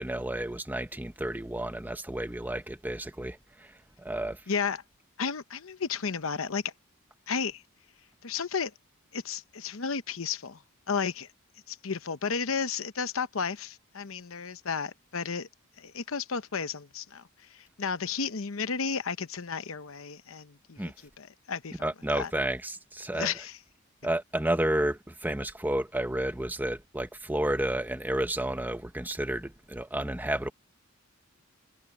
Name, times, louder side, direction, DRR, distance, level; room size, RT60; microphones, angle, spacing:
voice 1, 0.0-4.4 20.8-20.9 21.8-23.3 24.0-30.5, right 1 dB, 10° right, 0.9 m, -31 dB
voice 2, 4.5-4.8 5.2-6.7 7.3-7.6 8.2-8.7 9.1-10.6 10.9-11.3 11.7-15.5 15.8-17.2 17.5-20.8 21.2-21.8 22.2-22.3 23.1-23.5, left 5 dB, 70° left, 0.9 m, -33 dB
head